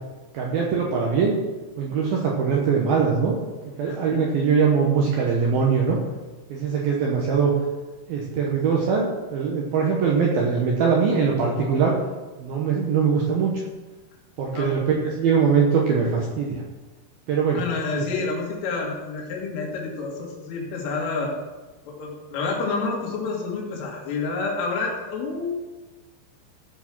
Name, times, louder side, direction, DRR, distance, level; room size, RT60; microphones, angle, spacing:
voice 1, 0.3-1.4 1.8-3.4 3.8-6.0 6.5-7.5 8.1-11.9 12.4-13.5 14.4-16.6 17.3-17.6 17.9-18.1, right 6 dB, 75° right, -1 dB, 2.2 m, -22 dB
voice 2, 3.9-4.2 14.5-14.7 17.6-21.3 21.9-25.5, left 4 dB, 80° left, -1 dB, 4.4 m, -29 dB
14.5 x 4.9 x 6.0 m, 1.2 s
omnidirectional pair, 5.6 m